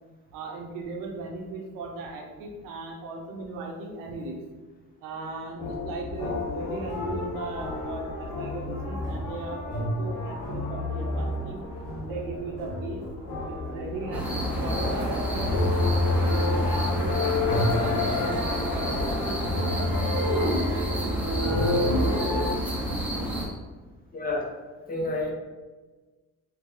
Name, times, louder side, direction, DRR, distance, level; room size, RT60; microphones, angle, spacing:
voice 1, 0.3-4.4 5.0-11.6 12.1-13.1 13.5-15.7 16.2-21.9, right 3 dB, 75° right, 0 dB, 0.8 m, -38 dB
sound 1, 5.6-22.5, left 2 dB, 85° left, 1.1 m, -29 dB
sound 2, 14.1-23.5, right 1 dB, 5° right, 0.8 m, -30 dB
voice 2, 24.1-24.5 24.7-25.3, left 2 dB, 25° left, -1 dB, 0.8 m, -29 dB
2.8 x 2.6 x 3.4 m, 1.3 s
supercardioid pair, 85°, 33 cm